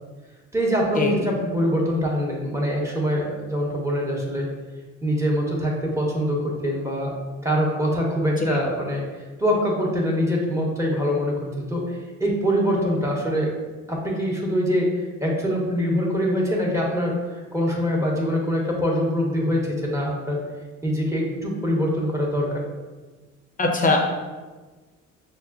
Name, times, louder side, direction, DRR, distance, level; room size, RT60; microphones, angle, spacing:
voice 1, 0.5-4.5 5.0-7.1 7.4-9.0 9.4-13.5 13.9-20.4 20.8-22.6, equal, 10° right, -2 dB, 1.0 m, -24 dB
voice 2, 23.6-24.1, left 3 dB, 25° left, 1 dB, 0.7 m, -20 dB
6.2 x 2.1 x 2.4 m, 1.3 s
cardioid pair, 90°, 30 cm